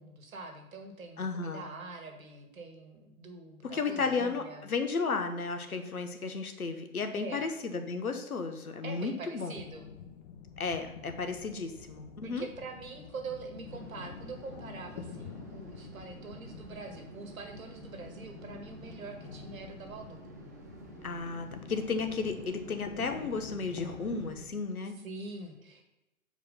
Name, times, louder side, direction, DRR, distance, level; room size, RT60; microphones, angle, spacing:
voice 1, 0.0-4.7 7.2-7.4 8.8-9.9 12.2-20.2 25.0-25.8, right 4 dB, 75° right, 5 dB, 1.9 m, -44 dB
voice 2, 1.2-1.7 3.6-9.6 10.6-12.5 21.0-25.0, left 4 dB, 90° left, 7 dB, 1.2 m, -34 dB
sound 1, 9.6-24.5, left 7 dB, 50° left, 1.0 m, -49 dB
sound 2, 13.6-24.3, right 2 dB, 15° right, 0.3 m, -49 dB
7.1 x 4.8 x 5.4 m, 0.97 s
hypercardioid pair, 125°, 42 cm